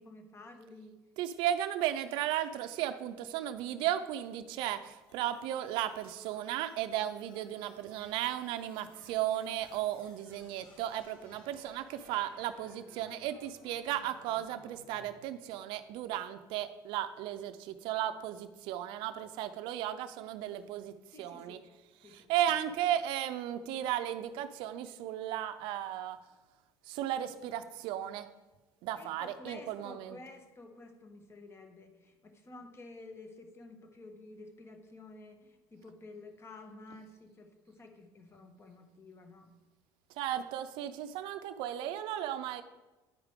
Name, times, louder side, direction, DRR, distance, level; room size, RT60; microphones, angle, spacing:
voice 1, 0.0-1.0 21.1-21.6 22.0-22.3 28.9-39.5, left 2 dB, 30° left, 6 dB, 1.2 m, -51 dB
voice 2, 1.2-21.6 22.0-26.2 26.8-28.3 28.8-30.2 40.2-42.6, right 11 dB, 75° right, 9 dB, 0.4 m, -35 dB
sound 1, 5.1-15.1, left 2 dB, 65° left, 1.7 m, -60 dB
9.6 x 4.8 x 3.6 m, 1.1 s
supercardioid pair, 100°, 9 cm